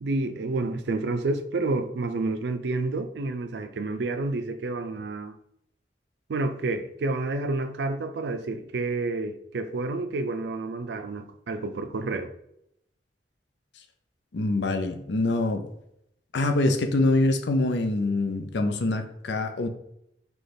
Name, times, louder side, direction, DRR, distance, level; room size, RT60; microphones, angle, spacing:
voice 1, 0.0-5.4 6.3-12.3, right 3 dB, 75° right, 0.4 m, -29 dB
voice 2, 14.3-15.6 16.3-19.7, left 2 dB, 80° left, 0.5 m, -24 dB
6.1 x 2.3 x 3.4 m
head